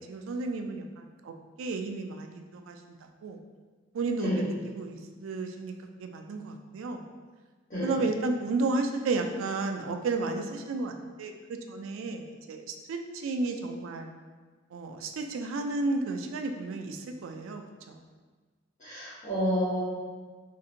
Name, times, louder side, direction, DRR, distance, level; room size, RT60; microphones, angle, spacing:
voice 1, 0.0-1.3 1.6-2.8 3.2-3.4 3.9-5.7 6.0-7.0 7.8-10.9 11.2-14.1 14.7-18.0, right 3 dB, 80° right, 5 dB, 0.3 m, -32 dB
voice 2, 18.8-19.8, equal, 35° left, -13 dB, 1.0 m, -29 dB
3.9 x 2.6 x 2.5 m, 1.4 s
head